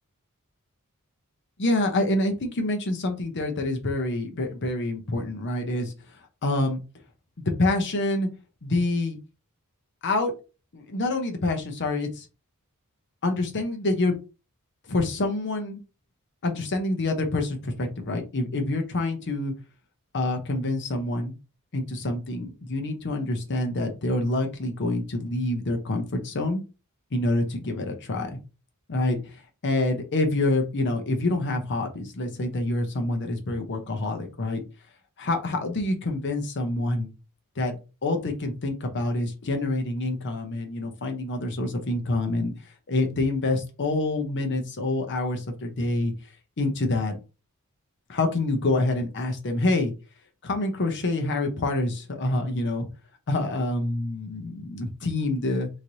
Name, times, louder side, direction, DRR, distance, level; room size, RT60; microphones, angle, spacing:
voice 1, 1.6-5.9 6.4-6.8 7.5-8.3 8.6-9.2 10.0-10.3 10.7-12.3 13.2-14.1 14.8-15.8 16.4-19.5 20.1-21.3 21.7-26.6 27.1-28.3 28.9-29.2 29.6-34.6 35.2-37.1 37.6-37.7 38.0-42.5 42.9-46.1 46.6-47.2 48.1-49.9 50.4-52.9 53.3-55.7, left 2 dB, 55° left, 5 dB, 0.8 m, -26 dB
3.2 x 2.9 x 2.6 m, 0.31 s
head